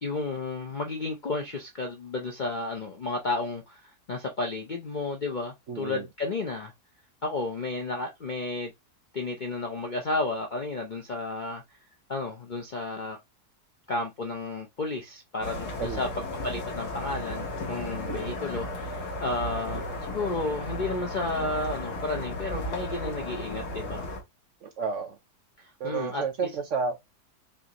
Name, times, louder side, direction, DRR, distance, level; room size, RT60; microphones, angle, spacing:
voice 1, 0.0-3.8 4.1-6.7 7.2-8.7 9.1-11.6 12.1-13.2 13.9-24.1 25.8-26.5, left 3 dB, 50° left, 0.5 m, -32 dB
voice 2, 5.7-6.1 15.8-16.0 18.1-18.3 24.6-25.2 25.8-27.0, right 5 dB, 60° right, 0.9 m, -31 dB
sound 1, 15.4-24.2, left 1 dB, 75° left, 1.9 m, -35 dB
5.3 x 2.6 x 2.9 m
omnidirectional pair, 1.7 m